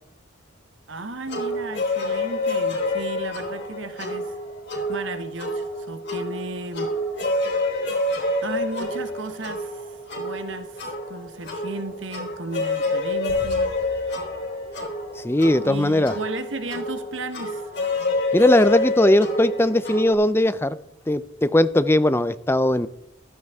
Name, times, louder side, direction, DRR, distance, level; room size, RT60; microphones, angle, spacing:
voice 1, 0.9-4.3 4.9-6.9 8.4-9.9 10.2-13.7 15.6-17.7, right 2 dB, 65° right, 9 dB, 1.1 m, -34 dB
sound 1, 1.3-20.1, left 2 dB, 55° left, 3.6 m, -28 dB
sound 2, 13.3-15.8, equal, 90° left, 3.7 m, -43 dB
voice 2, 15.2-16.1 18.3-20.8 21.1-22.9, left 1 dB, 10° left, 14 dB, 0.4 m, -19 dB
15.0 x 13.5 x 3.6 m, 0.80 s
head